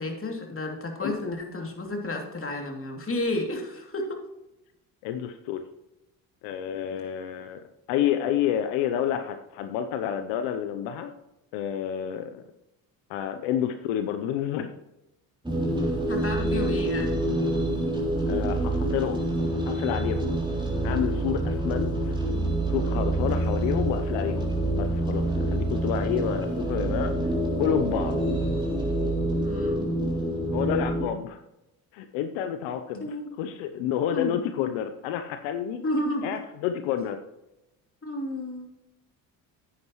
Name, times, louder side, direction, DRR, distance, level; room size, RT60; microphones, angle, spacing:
voice 1, 0.0-4.0 16.1-17.2 29.4-29.9 33.0-33.3 34.1-34.3 35.8-36.3 38.0-38.7, left 1 dB, 30° left, 2 dB, 2.8 m, -31 dB
voice 2, 5.0-5.6 6.4-7.6 7.9-11.1 11.5-12.4 13.1-14.7 18.3-19.3 19.7-20.4 20.8-22.1 22.7-27.2 27.6-28.2 30.5-31.4 31.9-33.1 33.4-35.8 36.2-37.2, left 9 dB, 80° left, 8 dB, 0.8 m, -29 dB
sound 1, 15.4-31.1, right 1 dB, 10° right, 3.6 m, -27 dB
9.9 x 9.5 x 3.1 m, 0.90 s
hypercardioid pair, 65°, 45 cm